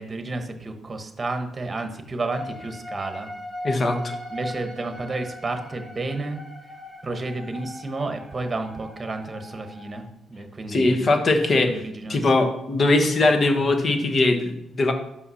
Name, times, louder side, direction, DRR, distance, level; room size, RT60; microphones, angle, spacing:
voice 1, 0.0-3.3 4.3-6.4 7.0-11.1 11.6-12.3, right 2 dB, 25° right, 6 dB, 1.2 m, -31 dB
sound 1, 2.3-10.0, left 1 dB, 10° left, 1.6 m, -39 dB
voice 2, 3.6-4.1 10.7-11.7 12.1-14.9, left 2 dB, 40° left, 6 dB, 1.1 m, -20 dB
5.6 x 5.6 x 5.7 m, 0.85 s
cardioid pair, 90°, 0 cm